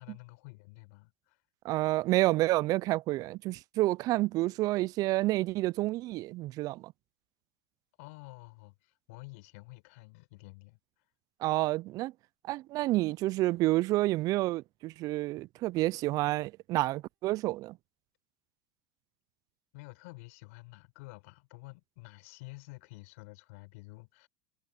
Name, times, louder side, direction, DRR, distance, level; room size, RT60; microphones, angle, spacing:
voice 1, 0.0-1.4 8.0-10.8 19.7-24.3, left 26 dB, 70° left, 5.0 m, -50 dB
voice 2, 1.6-6.9 11.4-12.1 12.4-17.8, right 18 dB, 50° right, 0.5 m, -29 dB
hypercardioid pair, 90°, 8 cm